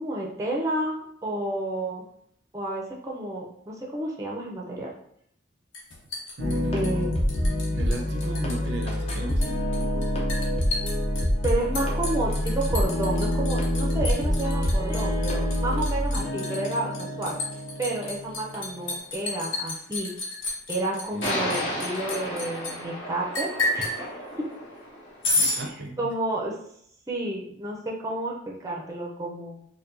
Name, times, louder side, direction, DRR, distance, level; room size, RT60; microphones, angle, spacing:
voice 1, 0.0-2.1 2.5-4.9 6.7-7.3 11.4-17.4 17.8-20.1 20.7-24.5 25.6-26.5 27.1-29.7, right 2 dB, 15° right, -1 dB, 0.5 m, -31 dB
Liquid, 5.7-7.7 7.9-8.6 8.8-22.7 23.3-24.0 25.2-25.6, left 2 dB, 90° left, 1.0 m, -31 dB
sound 1, 6.4-19.0, left 1 dB, 30° left, 0.6 m, -27 dB
voice 2, 6.4-9.6 21.1-21.8 25.4-26.1, right 1 dB, 65° right, 2 dB, 0.5 m, -36 dB
sound 2, 18.5-18.6 21.2-25.6, left 1 dB, 60° left, 1.5 m, -33 dB
4.5 x 2.2 x 2.6 m, 0.69 s
head